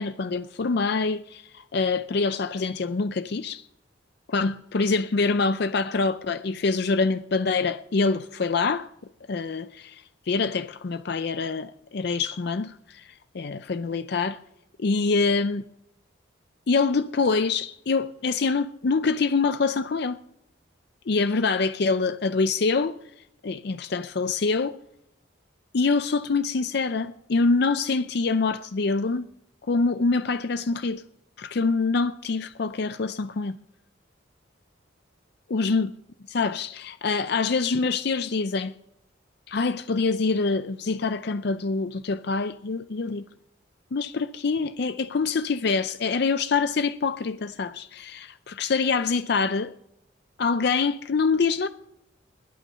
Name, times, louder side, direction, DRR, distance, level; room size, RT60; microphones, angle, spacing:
voice 1, 0.0-3.7 4.3-8.9 9.3-14.4 14.8-15.6 16.7-20.2 21.1-23.0 23.4-24.8 25.7-29.3 29.7-31.0 31.4-33.6 35.5-35.9 36.3-38.7 39.5-43.2 43.9-49.7 50.4-51.7, left 4 dB, 55° left, 0.5 m, -25 dB
21.0 x 9.1 x 5.6 m
head